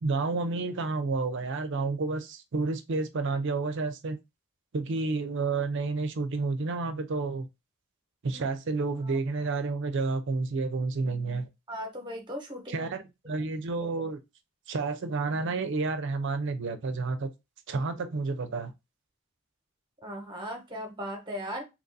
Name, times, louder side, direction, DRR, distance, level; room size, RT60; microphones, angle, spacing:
voice 1, 0.0-4.2 4.7-7.5 8.2-11.5 12.7-13.0 13.3-14.2 14.7-17.3 17.7-18.7, right 3 dB, 55° right, 0.5 m, -30 dB
voice 2, 11.7-12.9 20.0-21.6, equal, 20° right, 1.0 m, -38 dB
2.9 x 2.6 x 3.9 m
head